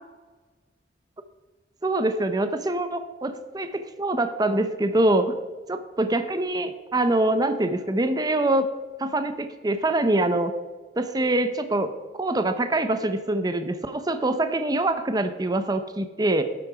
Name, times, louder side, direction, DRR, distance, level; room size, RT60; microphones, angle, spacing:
voice 1, 1.8-5.4 5.7-8.7 9.0-10.5 11.0-16.4, right 2 dB, 20° right, 9 dB, 0.6 m, -24 dB
12.0 x 7.8 x 4.9 m, 1.3 s
head